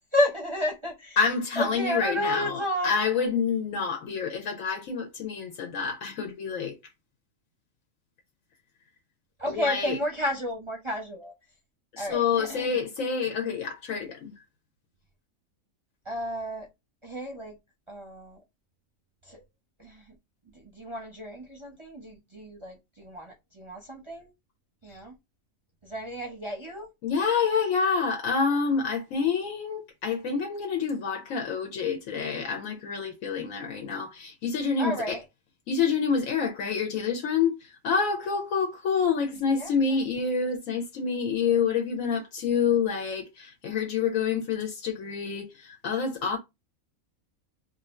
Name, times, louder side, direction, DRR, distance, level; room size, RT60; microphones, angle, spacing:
voice 1, 0.1-1.2 1.6-2.9 9.4-11.3 12.0-12.8 16.0-16.7 17.0-17.6 17.9-18.4 19.2-19.4 19.8-20.1 20.5-24.3 24.8-25.1 25.8-26.9 34.8-35.2 39.5-39.7, equal, 30° right, 0.6 m, -32 dB
voice 2, 1.2-6.8 9.5-10.0 11.9-14.3 24.9-25.0 27.0-35.2 35.7-46.4, left 6 dB, 80° left, 1.1 m, -27 dB
2.7 x 2.5 x 4.1 m
omnidirectional pair, 1.4 m